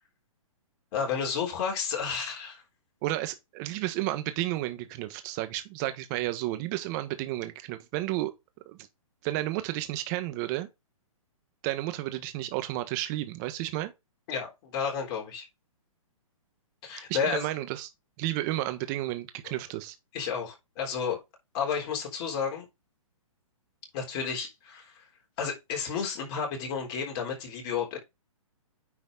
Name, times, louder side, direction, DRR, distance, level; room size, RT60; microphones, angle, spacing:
voice 1, 0.9-2.6 14.3-15.5 16.8-17.5 19.4-19.5 20.1-21.2 21.5-22.7 23.9-25.0 25.4-28.0, left 6 dB, 35° left, 3.8 m, -31 dB
voice 2, 3.0-8.3 8.6-8.8 9.2-10.7 11.6-13.9 17.1-17.9 18.2-19.9, right 16 dB, 30° right, 1.4 m, -32 dB
9.7 x 4.3 x 4.1 m
hypercardioid pair, 145°, 18 cm